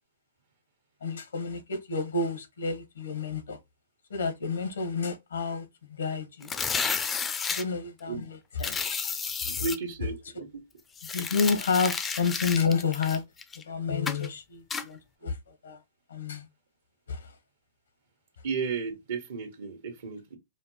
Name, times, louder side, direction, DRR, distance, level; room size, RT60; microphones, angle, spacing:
voice 1, 1.0-3.6 4.1-6.5 7.5-8.8 9.4-9.6 11.1-13.2 13.7-15.8 16.1-16.5 17.1-17.3, left 5 dB, 85° left, 1.3 m, -30 dB
sound 1, 6.4-7.6 8.6-9.8 11.0-13.6 14.1-14.3 14.7-14.9, left 5 dB, 15° left, 0.5 m, -31 dB
voice 2, 9.4-10.5 18.4-20.4, right 5 dB, 70° right, 1.1 m, -34 dB
4.9 x 2.2 x 3.1 m
hypercardioid pair, 130°, 0 cm